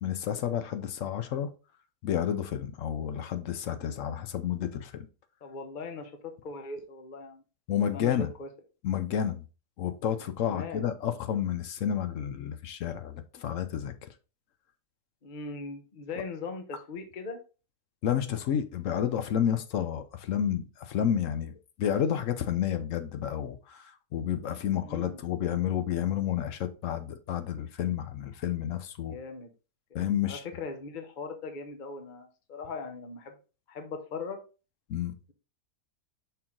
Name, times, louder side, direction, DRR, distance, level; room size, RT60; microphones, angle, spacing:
voice 1, 0.0-1.5 2.0-4.9 7.7-8.3 8.8-9.4 9.8-13.9 18.0-29.2 29.9-30.4 34.9-35.1, left 9 dB, 65° left, 0.9 m, -30 dB
voice 2, 5.4-6.1 6.4-7.4 7.9-8.5 10.4-10.9 15.2-17.4 24.8-25.2 29.1-29.5 30.2-33.3 33.7-34.4, left 4 dB, 40° left, 0.9 m, -39 dB
5.7 x 4.5 x 3.6 m
omnidirectional pair, 1.6 m